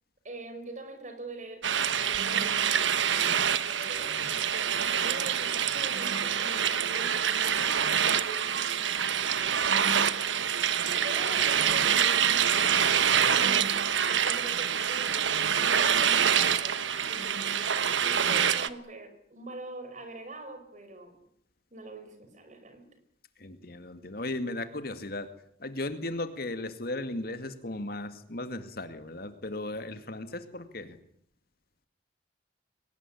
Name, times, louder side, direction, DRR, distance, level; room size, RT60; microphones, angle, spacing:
voice 1, 0.2-2.7 3.7-7.2 7.8-10.0 10.8-13.7 14.1-16.8 17.1-21.1 21.7-22.9, right 2 dB, 40° right, 7 dB, 5.3 m, -44 dB
sound 1, 1.6-18.7, right 8 dB, 80° right, 1.2 m, -26 dB
voice 2, 23.4-25.3 25.6-31.0, left 2 dB, 50° left, 10 dB, 2.2 m, -36 dB
23.5 x 19.0 x 10.0 m, 0.68 s
head